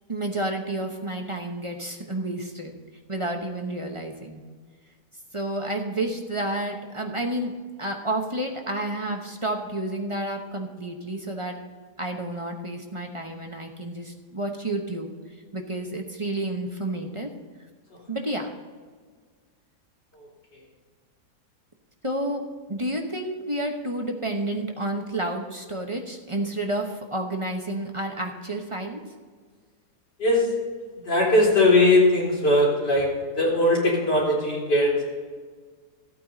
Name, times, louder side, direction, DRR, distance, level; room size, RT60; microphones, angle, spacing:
voice 1, 0.1-2.8 3.1-4.4 5.3-11.6 12.0-15.1 15.5-17.3 18.1-18.5 22.0-22.4 22.7-29.0, right 1 dB, 25° right, 2 dB, 0.9 m, -30 dB
voice 2, 30.2-30.5 30.9-35.0, left 1 dB, 85° left, -5 dB, 4.6 m, -20 dB
14.5 x 8.8 x 4.1 m, 1.5 s
omnidirectional pair, 1.8 m